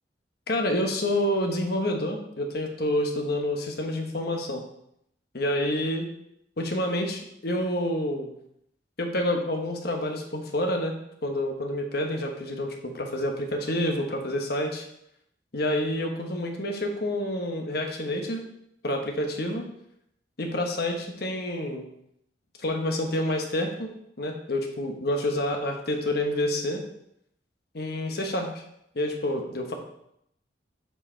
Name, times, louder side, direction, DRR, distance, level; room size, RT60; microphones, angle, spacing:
voice 1, 0.5-4.6 5.3-6.1 6.6-8.3 9.0-10.9 11.2-14.8 15.5-18.5 18.8-19.7 20.4-21.9 22.6-23.9 24.2-26.8 27.7-28.5 28.9-29.7, left 1 dB, 60° left, 3 dB, 1.1 m, -28 dB
7.0 x 4.9 x 4.4 m, 0.76 s
head